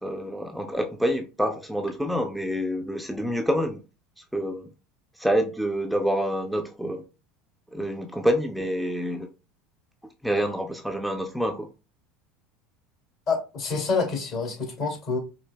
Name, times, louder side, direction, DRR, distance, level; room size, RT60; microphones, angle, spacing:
voice 1, 0.0-3.8 4.2-4.7 5.2-7.0 7.7-9.3 10.2-11.7, equal, ahead, 0.5 m, -27 dB
voice 2, 13.3-15.2, left 4 dB, 50° left, 2.2 m, -27 dB
5.0 x 2.8 x 2.2 m
hypercardioid pair, 80°, 0 cm